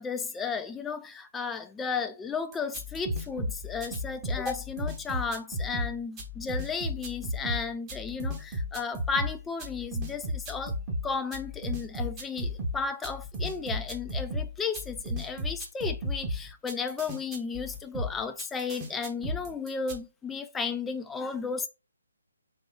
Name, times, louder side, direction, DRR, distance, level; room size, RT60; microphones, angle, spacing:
voice 1, 0.0-10.7 11.0-21.7, left 5 dB, 5° left, 0.3 m, -34 dB
sound 1, 2.5-20.0, equal, 15° right, 0.8 m, -34 dB
3.7 x 2.8 x 4.6 m
figure-of-eight pair, 140°, 0 cm